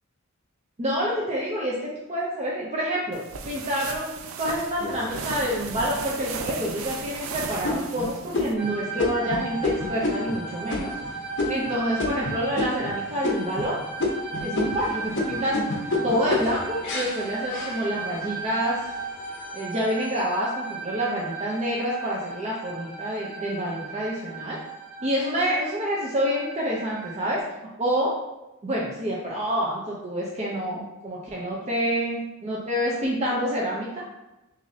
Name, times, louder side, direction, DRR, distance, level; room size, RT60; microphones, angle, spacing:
voice 1, 0.8-10.9 11.5-13.8 14.4-15.6 16.0-18.8 19.5-24.6 25.0-27.4 27.8-28.1 28.6-33.9, equal, 30° right, -4 dB, 0.6 m, -27 dB
sound 1, 3.1-8.5, right 5 dB, 80° right, 0.4 m, -36 dB
sound 2, 4.8-5.7 6.2-6.3 6.8-7.2 7.6-12.9 13.2-13.7 14.0-18.3 18.8-19.3, left 2 dB, 60° left, 0.8 m, -29 dB
sound 3, 8.6-27.4, right 4 dB, 5° right, 1.2 m, -36 dB
6.0 x 2.7 x 2.7 m, 0.99 s
head